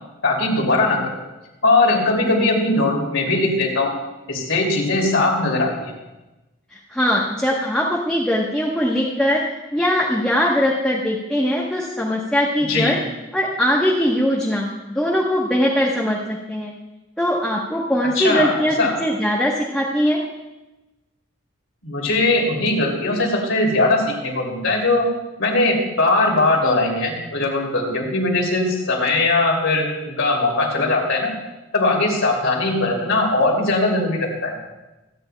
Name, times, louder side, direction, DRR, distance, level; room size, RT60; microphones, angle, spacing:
voice 1, 0.2-1.2 1.6-3.9 4.3-5.9 12.7-13.0 18.1-19.0 21.8-25.1 25.4-31.3 31.7-34.5, left 2 dB, 75° left, -1 dB, 2.9 m, -20 dB
voice 2, 6.7-9.4 9.7-13.0 13.3-16.7 17.2-18.7 19.0-20.2, equal, 5° left, -4 dB, 1.1 m, -21 dB
26.0 x 9.6 x 2.3 m, 1.0 s
head